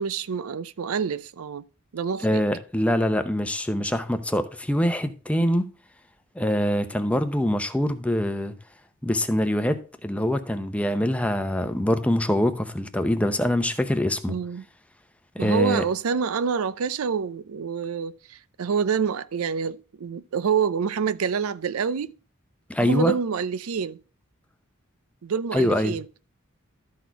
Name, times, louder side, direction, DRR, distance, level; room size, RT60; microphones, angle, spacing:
voice 1, 0.0-1.6 1.9-2.4 14.3-14.6 15.4-22.1 22.8-24.0 25.2-26.1, right 6 dB, 80° right, 0.5 m, -27 dB
voice 2, 2.2-5.6 6.4-8.5 9.0-14.4 15.3-15.8 22.7-23.1 25.5-26.0, left 1 dB, 5° left, 0.7 m, -24 dB
12.5 x 4.3 x 4.5 m
head